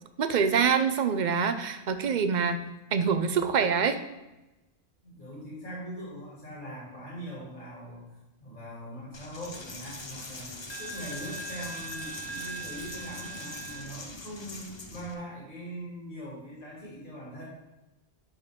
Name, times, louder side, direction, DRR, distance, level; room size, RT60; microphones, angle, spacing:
voice 1, 0.2-2.6 2.9-4.0, right 6 dB, 50° right, 9 dB, 0.6 m, -25 dB
voice 2, 5.0-17.4, equal, 45° left, -7 dB, 3.1 m, -42 dB
Coin (dropping), 9.1-15.1, right 1 dB, 30° left, 0.6 m, -40 dB
11.0 x 4.1 x 3.6 m, 1.0 s
omnidirectional pair, 1.1 m